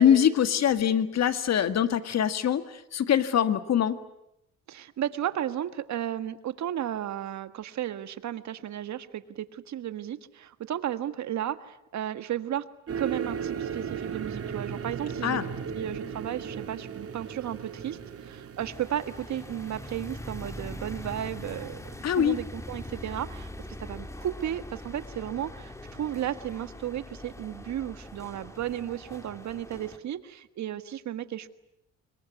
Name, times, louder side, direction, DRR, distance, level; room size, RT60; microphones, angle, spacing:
voice 1, 0.0-4.0 15.2-15.4 22.0-22.4, left 9 dB, 60° left, 11 dB, 1.8 m, -23 dB
voice 2, 4.7-12.6 13.0-15.4 15.7-21.8 22.1-23.5 23.8-31.5, right 11 dB, 65° right, 12 dB, 1.6 m, -34 dB
sound 1, 12.9-20.2, right 7 dB, 50° right, 3.0 m, -36 dB
sound 2, 18.6-30.0, left 1 dB, 10° left, 2.7 m, -42 dB
26.5 x 22.0 x 9.5 m, 0.82 s
cardioid pair, 90°, 30 cm